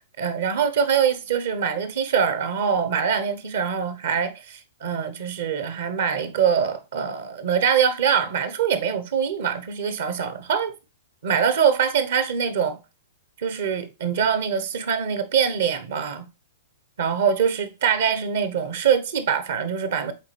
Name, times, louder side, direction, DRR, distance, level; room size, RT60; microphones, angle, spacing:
voice 1, 0.2-10.7 11.2-12.8 13.4-16.3 17.0-20.1, right 7 dB, 60° right, 1.1 m, -23 dB
7.2 x 4.4 x 3.3 m
figure-of-eight pair, 110°, 0 cm